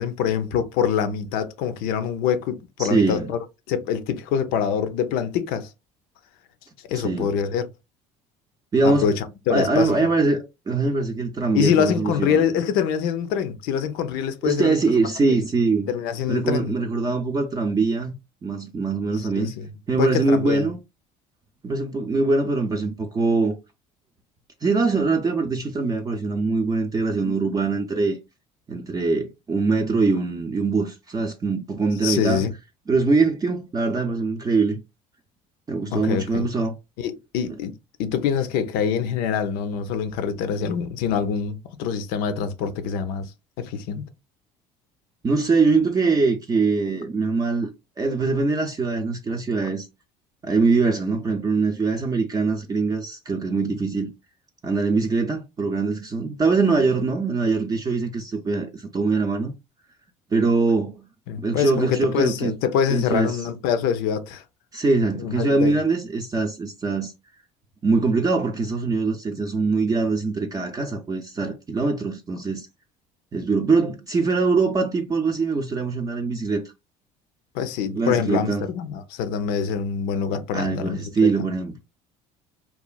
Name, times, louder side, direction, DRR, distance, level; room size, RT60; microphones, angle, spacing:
voice 1, 0.0-5.7 6.9-7.7 8.8-10.1 11.5-15.0 15.3-15.4 15.9-16.7 19.4-19.7 20.0-20.7 32.0-32.5 35.9-36.5 37.0-37.7 38.0-43.3 43.6-44.0 61.3-64.4 65.1-65.8 77.5-81.0, left 7 dB, 80° left, 0.5 m, -25 dB
voice 2, 2.8-3.3 7.0-7.3 8.7-9.1 9.5-12.6 14.4-15.9 16.3-18.1 18.4-19.5 19.9-20.8 21.6-23.5 24.6-28.2 28.7-32.4 32.9-34.8 35.7-36.7 45.2-47.7 48.0-49.9 50.4-54.1 54.6-59.5 60.3-61.0 61.4-62.5 62.9-63.4 64.7-67.1 67.8-72.7 73.3-76.6 77.9-78.7 80.5-81.8, right 4 dB, 25° right, 0.5 m, -23 dB
2.9 x 2.3 x 2.2 m
supercardioid pair, 95°, 15 cm